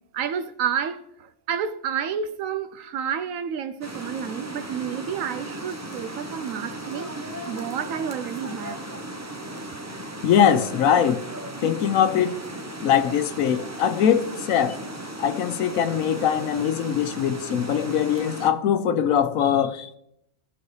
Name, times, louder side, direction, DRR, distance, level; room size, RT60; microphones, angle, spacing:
voice 1, 0.1-8.8, right 8 dB, 80° right, 1.0 m, -30 dB
sound 1, 3.8-18.5, right 1 dB, 15° right, 0.6 m, -36 dB
voice 2, 10.2-11.2 11.6-12.4 12.8-14.8 15.2-20.0, left 8 dB, 80° left, 1.1 m, -22 dB
17.5 x 6.3 x 3.2 m
omnidirectional pair, 1.4 m